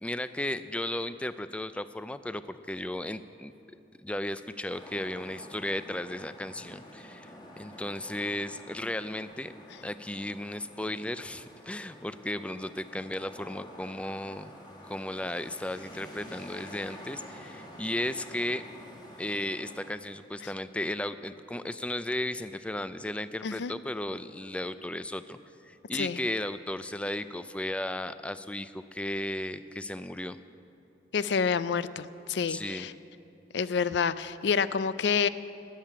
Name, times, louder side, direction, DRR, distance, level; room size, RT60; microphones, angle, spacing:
voice 1, 0.0-3.5 4.0-9.5 9.8-14.5 14.9-18.6 19.2-30.4 32.5-32.9, left 1 dB, 5° left, 12 dB, 0.3 m, -35 dB
sound 1, 4.7-19.9, equal, 25° left, 1.9 m, -49 dB
voice 2, 31.1-32.9 33.5-35.3, left 6 dB, 70° left, 15 dB, 0.4 m, -28 dB
17.5 x 7.5 x 8.8 m, 2.7 s
head